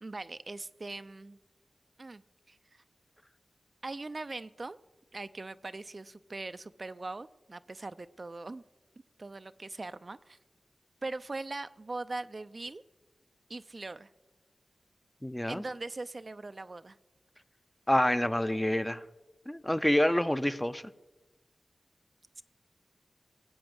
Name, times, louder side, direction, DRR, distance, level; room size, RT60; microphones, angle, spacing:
voice 1, 0.0-1.4 2.0-2.2 2.5-2.6 3.8-4.8 5.1-8.6 9.2-10.4 11.0-12.8 13.5-14.1 15.5-17.0, right 2 dB, 50° right, 13 dB, 0.5 m, -41 dB
voice 2, 15.2-15.6 17.9-19.0 19.5-20.8, left 1 dB, 10° left, 12 dB, 0.7 m, -27 dB
18.0 x 7.9 x 7.9 m, 1.1 s
cardioid pair, 45°, 0 cm